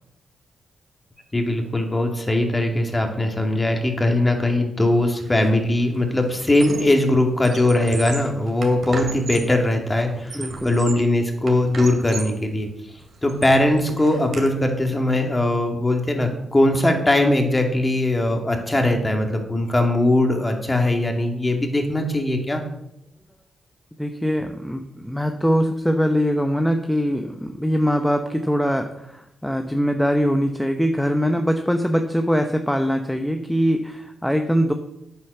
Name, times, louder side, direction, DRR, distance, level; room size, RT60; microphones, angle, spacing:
voice 1, 1.3-12.7 13.2-22.6, left 1 dB, 20° left, 4 dB, 2.4 m, -20 dB
Squeak, 5.2-5.5 5.8-7.0 7.3-9.6 10.1-11.1 11.5-12.4 12.9-14.5, right 4 dB, 55° right, 2.8 m, -36 dB
voice 2, 10.3-10.8 24.0-34.7, equal, 5° left, 6 dB, 0.9 m, -22 dB
9.3 x 8.4 x 6.7 m, 0.82 s
cardioid pair, 90°, 0 cm